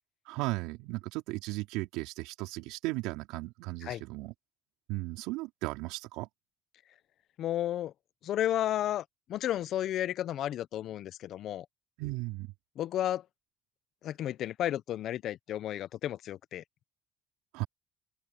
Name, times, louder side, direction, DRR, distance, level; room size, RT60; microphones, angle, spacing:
voice 1, 0.3-4.3 4.9-6.3 12.0-12.5 17.5-17.7, right 21 dB, 80° right, 4.4 m, -36 dB
voice 2, 7.4-7.9 8.2-11.6 12.8-13.2 14.0-16.6, left 12 dB, 65° left, 1.2 m, -32 dB
open air
hypercardioid pair, 65°, 0 cm